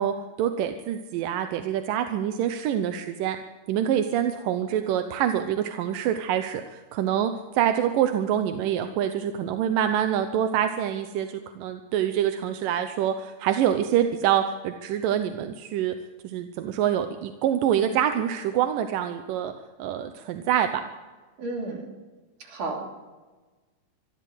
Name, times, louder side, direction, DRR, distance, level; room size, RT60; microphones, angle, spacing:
voice 1, 0.0-3.4 3.7-15.9 16.2-19.5 19.8-20.7, right 10 dB, 90° right, 8 dB, 2.6 m, -26 dB
voice 2, 21.4-21.9 22.4-22.9, right 2 dB, 70° right, 1 dB, 4.6 m, -32 dB
25.0 x 13.0 x 7.8 m, 1.3 s
omnidirectional pair, 3.8 m